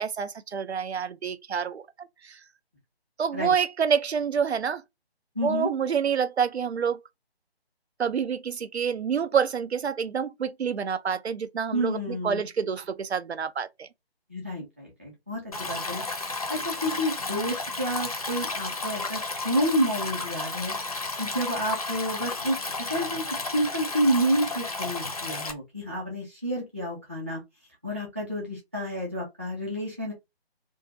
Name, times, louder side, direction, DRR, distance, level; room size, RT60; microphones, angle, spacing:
voice 1, 0.0-2.4 3.2-4.8 5.4-7.0 8.0-13.9, right 7 dB, 80° right, 0.5 m, -27 dB
voice 2, 5.3-5.7 11.7-12.5 14.3-22.6 22.9-23.2 23.5-27.4 27.8-30.1, equal, 15° right, 0.5 m, -29 dB
Stream, 15.5-25.5, left 3 dB, 35° left, 0.5 m, -33 dB
2.6 x 2.3 x 2.7 m
figure-of-eight pair, 150°, 32 cm